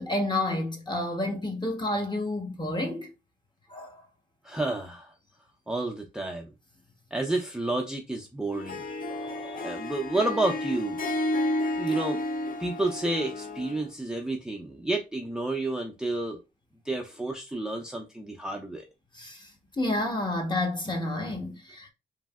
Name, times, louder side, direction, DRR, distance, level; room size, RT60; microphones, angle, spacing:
voice 1, 0.0-3.1 3.7-4.0 9.1-9.8 19.1-19.5 19.8-21.9, left 1 dB, 20° left, 1.0 m, -30 dB
voice 2, 4.4-5.1 5.7-6.5 7.1-11.0 11.7-12.2 12.6-16.4 16.8-18.8, right 2 dB, 5° right, 0.6 m, -30 dB
Harp, 8.5-13.8, left 1 dB, 40° left, 0.6 m, -31 dB
3.1 x 2.6 x 2.3 m
cardioid pair, 55°, 21 cm